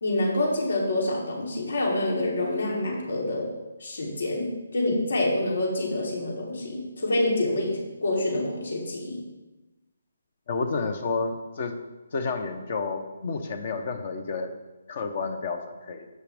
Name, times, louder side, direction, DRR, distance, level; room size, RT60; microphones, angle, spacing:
voice 1, 0.0-3.5 3.8-9.2, left 1 dB, 75° left, -3 dB, 3.2 m, -27 dB
voice 2, 10.5-11.8 12.1-14.6 14.9-16.1, left 4 dB, 40° left, 7 dB, 0.8 m, -30 dB
11.0 x 8.9 x 3.5 m, 1.1 s
hypercardioid pair, 170°, 0 cm